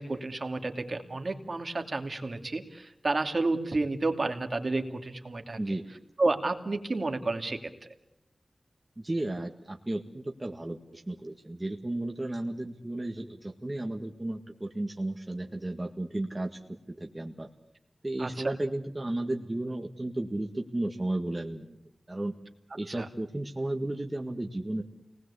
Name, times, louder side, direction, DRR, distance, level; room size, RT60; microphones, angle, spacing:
voice 1, 0.0-5.6 6.2-7.6 18.2-18.5 23.0-23.1, right 2 dB, 55° right, 5 dB, 2.6 m, -30 dB
voice 2, 9.0-17.5 18.0-21.8 22.1-22.4 22.7-24.8, right 1 dB, 25° right, 3 dB, 1.8 m, -34 dB
29.0 x 20.0 x 8.4 m, 0.86 s
wide cardioid pair, 70°, 0 cm